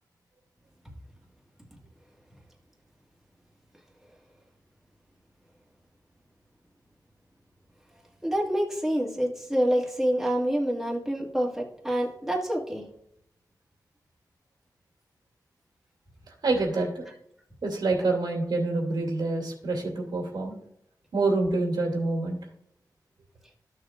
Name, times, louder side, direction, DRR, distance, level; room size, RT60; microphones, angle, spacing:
voice 1, 8.2-12.8, equal, 5° right, -3 dB, 2.0 m, -27 dB
voice 2, 16.3-17.1 17.6-20.5 21.1-22.4, right 3 dB, 80° right, 1 dB, 2.5 m, -27 dB
13.5 x 6.4 x 2.5 m, 0.72 s
wide cardioid pair, 100°, 7 cm